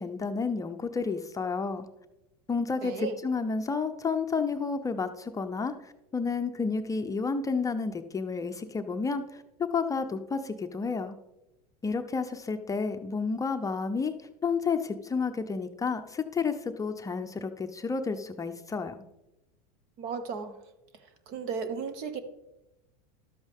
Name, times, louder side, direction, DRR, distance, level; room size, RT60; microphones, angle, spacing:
voice 1, 0.0-1.9 2.5-11.2 11.8-14.1 14.4-19.0, left 4 dB, 15° left, 7 dB, 0.6 m, -31 dB
voice 2, 2.8-3.2 20.0-20.6 21.3-22.2, right 5 dB, 55° right, 10 dB, 1.3 m, -34 dB
12.0 x 8.0 x 3.5 m, 0.95 s
hypercardioid pair, 110°, 20 cm